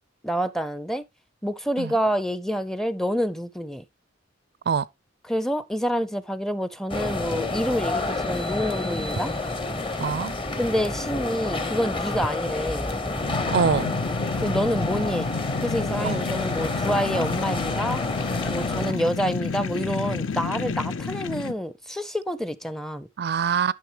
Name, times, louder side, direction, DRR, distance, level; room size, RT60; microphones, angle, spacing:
voice 1, 0.2-1.1 1.4-3.8 5.3-9.3 10.6-12.9 14.4-15.3 15.6-18.0 18.4-23.1, equal, ahead, 0.5 m, -27 dB
sound 1, 6.9-18.9, left 2 dB, 25° left, 0.9 m, -29 dB
voice 2, 10.0-10.3 13.5-13.9 16.0-16.2 18.9-19.1 23.2-23.7, right 6 dB, 55° right, 0.4 m, -24 dB
sound 2, 13.2-21.5, left 4 dB, 75° left, 0.6 m, -30 dB
10.5 x 6.4 x 2.9 m
head